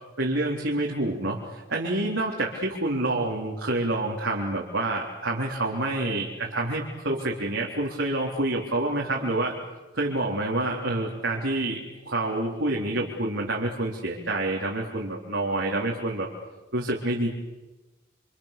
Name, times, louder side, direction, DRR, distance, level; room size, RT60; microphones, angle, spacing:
voice 1, 0.2-9.5 9.9-16.3 16.7-17.3, right 2 dB, 85° right, -2 dB, 4.0 m, -27 dB
29.5 x 26.5 x 6.9 m, 1.1 s
head